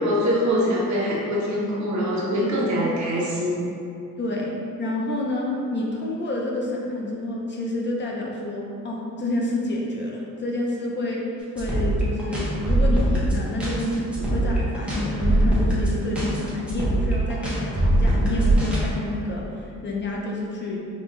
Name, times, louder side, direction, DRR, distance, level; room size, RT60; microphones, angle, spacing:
voice 1, 0.0-3.7, equal, 60° right, -5 dB, 0.9 m, -23 dB
voice 2, 4.2-4.5 4.8-11.2 11.5-20.8, left 1 dB, 35° left, -2 dB, 0.6 m, -28 dB
sound 1, 11.6-18.8, right 1 dB, 5° right, 0.7 m, -22 dB
5.1 x 2.3 x 3.1 m, 2.6 s
wide cardioid pair, 160°, 32 cm